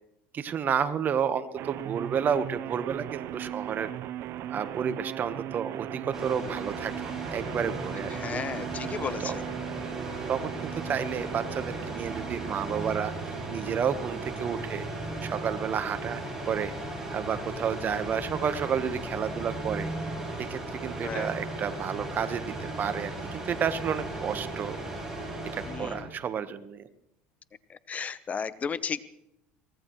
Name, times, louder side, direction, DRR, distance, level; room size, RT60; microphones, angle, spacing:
voice 1, 0.3-3.9 4.5-6.9 7.3-8.4 9.2-9.4 10.3-14.9 15.2-16.2 16.5-16.7 17.1-19.9 20.4-24.8 25.5-26.9, right 7 dB, 40° right, 11 dB, 1.2 m, -31 dB
sound 1, 1.6-14.6, right 12 dB, 55° right, 0.8 m, -39 dB
sound 2, 6.1-26.0, right 2 dB, 10° right, 5.2 m, -36 dB
voice 2, 8.2-9.3 21.0-21.3 25.7-26.0 27.9-29.0, left 6 dB, 30° left, 16 dB, 0.8 m, -33 dB
23.0 x 18.0 x 3.2 m, 0.82 s
supercardioid pair, 105°, 5 cm